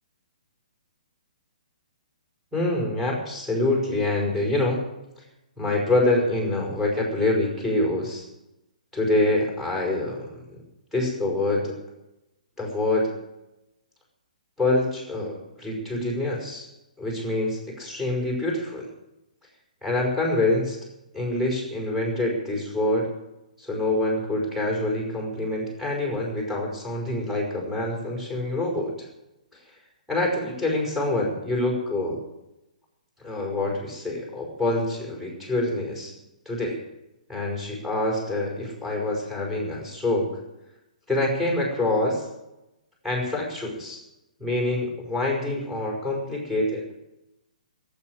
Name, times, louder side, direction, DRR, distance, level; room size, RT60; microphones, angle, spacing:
voice 1, 2.5-4.8 5.2-5.3 5.6-8.3 8.9-10.6 10.9-11.7 12.6-13.1 14.6-16.7 17.0-18.9 19.8-20.8 21.1-23.1 23.6-29.1 29.5-29.6 30.1-32.2 33.2-36.2 36.5-36.8 37.3-40.3 41.1-42.3 43.0-44.0 44.4-46.8, left 2 dB, 5° right, -3 dB, 5.6 m, -26 dB
17.5 x 8.2 x 9.9 m, 0.94 s
figure-of-eight pair, 125°, 4 cm